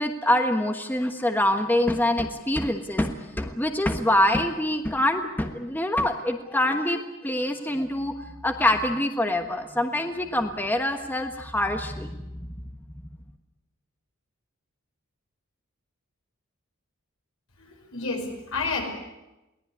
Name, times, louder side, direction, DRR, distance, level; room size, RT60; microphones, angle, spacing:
voice 1, 0.0-8.1 8.4-12.2, left 1 dB, 10° left, 6 dB, 1.3 m, -25 dB
voice 2, 17.6-18.8, left 3 dB, 80° left, 3 dB, 5.9 m, -30 dB
22.5 x 18.5 x 9.8 m, 1.0 s
head